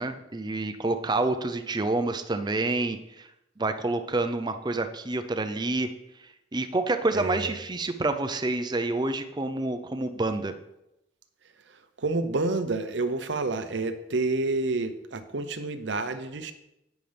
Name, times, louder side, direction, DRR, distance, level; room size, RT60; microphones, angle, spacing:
voice 1, 0.0-3.3 3.6-5.9 6.5-10.5, right 2 dB, 25° right, 7 dB, 0.6 m, -28 dB
voice 2, 7.1-7.6 12.0-16.5, right 3 dB, 70° right, 9 dB, 0.7 m, -29 dB
10.5 x 9.3 x 3.4 m, 0.87 s
head